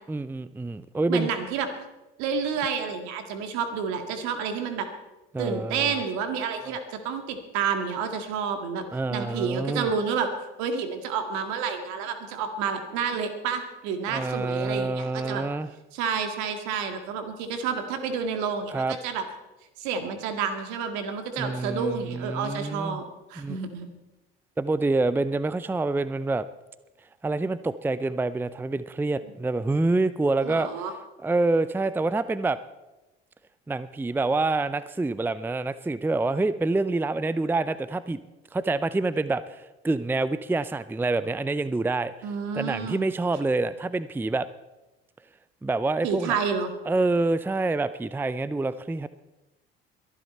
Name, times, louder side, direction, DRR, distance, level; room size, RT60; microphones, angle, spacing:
voice 1, 0.1-1.3 5.3-6.0 6.7-6.8 8.9-9.9 14.1-15.7 18.7-19.0 21.4-23.0 23.4-23.6 24.6-26.5 27.2-30.7 31.2-32.6 33.7-38.2 38.5-44.5 45.6-46.4 46.9-49.1, right 3 dB, 5° right, 16 dB, 0.5 m, -27 dB
voice 2, 1.1-1.7 2.2-4.9 5.4-15.4 15.9-19.2 19.8-23.0 23.3-23.9 30.4-30.9 42.2-43.1 46.0-46.7, right 6 dB, 70° right, 7 dB, 2.1 m, -29 dB
22.5 x 11.0 x 4.3 m, 1.0 s
hypercardioid pair, 60°, 30 cm